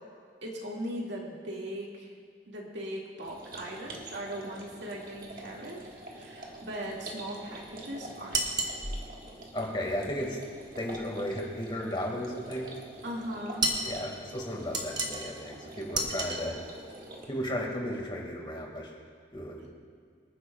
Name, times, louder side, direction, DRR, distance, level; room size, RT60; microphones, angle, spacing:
voice 1, 0.4-2.1 2.5-8.7 13.0-13.7 19.6-19.7, equal, 85° right, -2 dB, 2.2 m, -39 dB
sound 1, 3.2-17.3, right 1 dB, 50° right, 1.6 m, -46 dB
sound 2, 8.3-8.8 13.6-13.9 14.7-15.3 15.9-16.4, right 2 dB, 25° right, 1.1 m, -30 dB
voice 2, 9.5-10.4 10.8-12.7 13.8-16.6 17.3-18.9 19.3-19.7, left 1 dB, 25° left, -1 dB, 2.1 m, -34 dB
25.5 x 9.8 x 2.4 m, 2.1 s
head